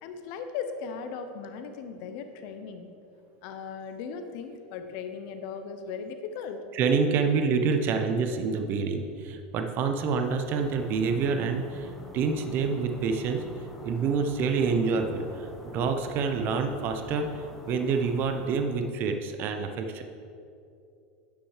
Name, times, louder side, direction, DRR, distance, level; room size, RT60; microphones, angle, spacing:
voice 1, 0.0-2.9 3.4-6.6, left 6 dB, 60° left, 7 dB, 0.9 m, -37 dB
voice 2, 6.7-13.5 13.8-20.0, right 5 dB, 40° right, 6 dB, 0.8 m, -27 dB
sound 1, 10.2-19.0, left 1 dB, 5° left, 1.0 m, -47 dB
10.0 x 6.0 x 4.9 m, 2.6 s
supercardioid pair, 135°, 5 cm